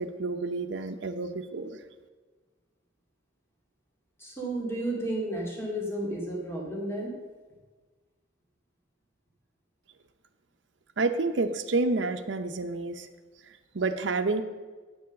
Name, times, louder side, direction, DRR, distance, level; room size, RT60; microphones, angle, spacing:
voice 1, 0.0-1.7 11.0-13.1 13.7-14.4, right 3 dB, 70° right, 8 dB, 0.7 m, -29 dB
voice 2, 4.2-7.2, right 1 dB, 15° left, -3 dB, 2.2 m, -32 dB
8.9 x 7.1 x 6.3 m, 1.4 s
head